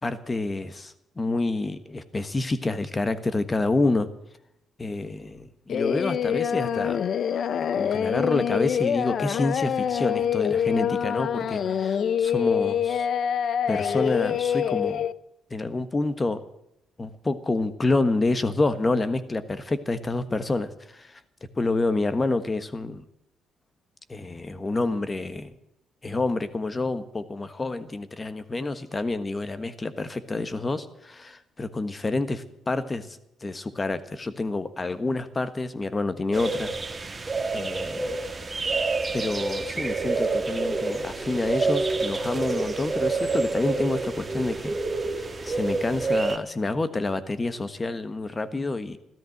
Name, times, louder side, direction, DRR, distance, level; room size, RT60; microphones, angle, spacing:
voice 1, 0.0-4.1 4.8-7.0 7.8-13.1 13.7-15.1 15.5-16.4 17.0-21.2 21.6-23.0 24.1-25.5 26.0-36.7 37.5-38.2 39.1-44.8 45.2-49.0, left 2 dB, 25° left, 12 dB, 1.4 m, -28 dB
Singing, 5.7-15.1, left 8 dB, 60° left, 0.5 m, -25 dB
sound 1, 36.3-46.4, right 3 dB, 25° right, 1.7 m, -28 dB
14.0 x 13.0 x 7.9 m, 0.79 s
cardioid pair, 90°, 0 cm